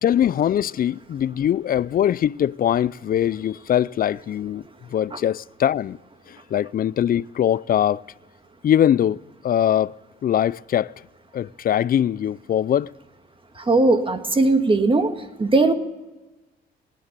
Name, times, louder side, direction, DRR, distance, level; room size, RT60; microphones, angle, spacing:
voice 1, 0.0-4.6 4.9-6.0 6.3-8.0 8.6-10.0 10.2-10.9 11.3-12.9, left 10 dB, 45° left, 0.4 m, -22 dB
voice 2, 13.5-15.1 15.4-15.7, right 3 dB, 25° right, 1.6 m, -19 dB
19.0 x 10.0 x 6.6 m
cardioid pair, 80°, 21 cm